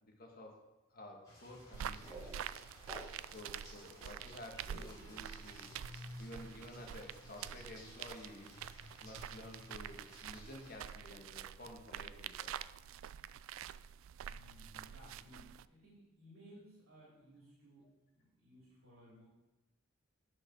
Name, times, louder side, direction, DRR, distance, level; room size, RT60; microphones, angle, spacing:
voice 1, 0.0-2.4 3.3-5.7 6.2-8.6 9.0-12.5, left 1 dB, 45° left, 1 dB, 1.7 m, -52 dB
sound 1, 1.2-11.0, left 1 dB, 15° left, 3.6 m, -56 dB
sound 2, 1.7-3.5, right 1 dB, 15° right, 1.7 m, -52 dB
sound 3, 1.7-15.7, right 9 dB, 65° right, 0.3 m, -47 dB
voice 2, 14.2-17.8 18.1-19.3, equal, 85° right, -6 dB, 3.0 m, -59 dB
7.8 x 6.3 x 6.1 m, 1.0 s
head